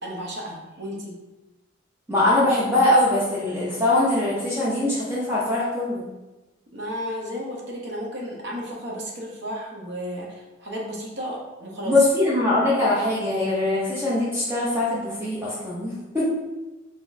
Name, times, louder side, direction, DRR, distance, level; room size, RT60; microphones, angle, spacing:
voice 1, 0.0-1.1 6.7-12.1, equal, 55° right, -2 dB, 0.9 m, -33 dB
voice 2, 2.1-6.0 11.9-16.3, left 1 dB, 10° right, -7 dB, 0.6 m, -22 dB
3.9 x 3.7 x 2.6 m, 1.1 s
head